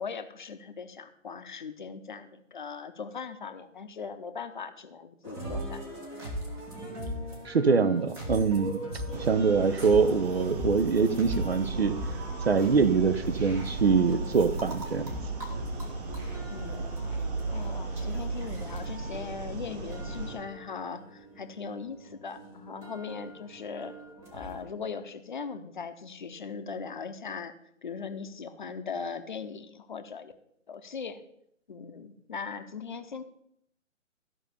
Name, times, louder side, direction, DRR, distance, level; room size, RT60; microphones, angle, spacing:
voice 1, 0.0-5.8 16.5-16.9 17.5-23.9 24.3-27.5 27.8-30.3 30.7-31.2 31.7-33.2, left 5 dB, 40° left, 9 dB, 0.9 m, -39 dB
sound 1, 5.2-24.7, equal, 5° right, 0.9 m, -40 dB
voice 2, 7.4-8.9 9.2-12.0 12.4-15.2, right 5 dB, 50° right, 12 dB, 0.9 m, -24 dB
sound 2, 9.1-20.4, right 3 dB, 30° right, 2.3 m, -35 dB
14.0 x 5.5 x 6.8 m, 0.71 s
figure-of-eight pair, 135°, 39 cm